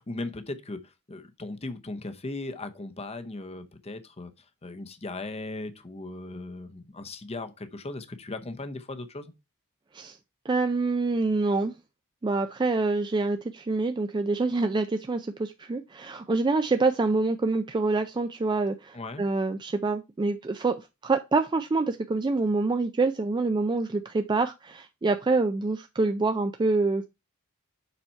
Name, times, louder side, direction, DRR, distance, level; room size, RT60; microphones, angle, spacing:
voice 1, 0.0-4.3 4.6-9.3 18.9-19.2, left 2 dB, 30° left, 0.8 m, -38 dB
voice 2, 10.5-11.7 12.2-27.0, right 3 dB, 20° right, 0.3 m, -26 dB
7.0 x 4.3 x 4.4 m
head